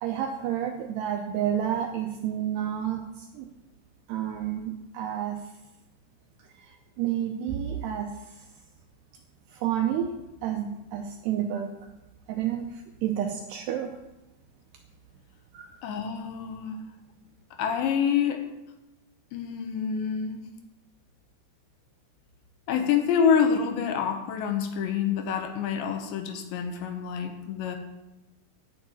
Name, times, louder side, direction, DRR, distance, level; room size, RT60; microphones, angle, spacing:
voice 1, 0.0-3.5 4.1-5.4 6.6-8.1 9.5-10.1 10.4-11.7 12.3-14.0 15.5-15.7, right 10 dB, 80° right, 4 dB, 2.4 m, -30 dB
voice 2, 15.8-16.8 17.5-18.5 19.3-20.5 22.7-27.8, left 7 dB, 75° left, 6 dB, 3.0 m, -27 dB
10.0 x 6.6 x 8.9 m, 0.98 s
omnidirectional pair, 5.6 m